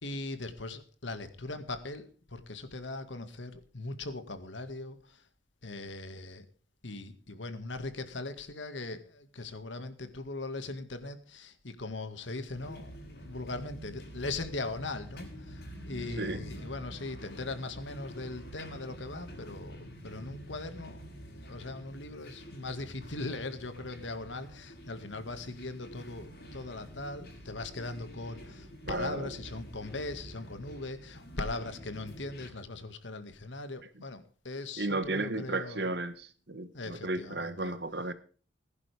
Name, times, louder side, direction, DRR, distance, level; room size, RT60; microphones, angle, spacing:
voice 1, 0.0-5.2 5.6-6.5 6.8-35.9 36.7-37.7, left 2 dB, 85° left, 2.1 m, -40 dB
sound 1, 12.5-32.5, equal, 60° left, 7.4 m, -47 dB
voice 2, 28.9-29.3 34.8-38.1, right 2 dB, 65° right, 1.6 m, -34 dB
20.5 x 11.0 x 3.5 m
head